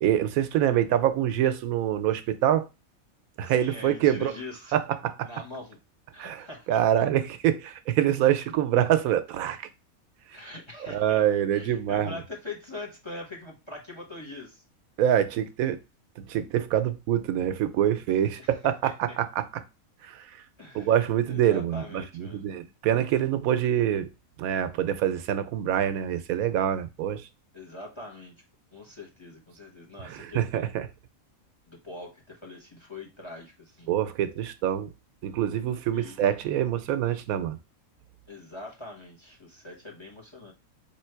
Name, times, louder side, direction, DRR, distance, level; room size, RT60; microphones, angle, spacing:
voice 1, 0.0-2.7 3.4-4.3 4.7-5.3 6.2-9.7 10.9-12.1 15.0-15.8 16.2-19.5 20.0-20.2 20.7-24.1 24.4-27.3 30.0-30.9 33.9-34.9 35.2-37.6, right 11 dB, 80° right, 1.0 m, -25 dB
voice 2, 3.4-4.8 5.2-5.8 6.1-7.0 10.3-11.2 11.5-14.6 18.4-18.5 18.8-19.2 20.6-20.9 21.3-22.4 27.5-28.3 28.7-30.7 31.7-33.9 35.9-36.2 38.3-40.5, left 2 dB, 20° left, 0.9 m, -42 dB
3.6 x 3.0 x 4.4 m
omnidirectional pair, 1.5 m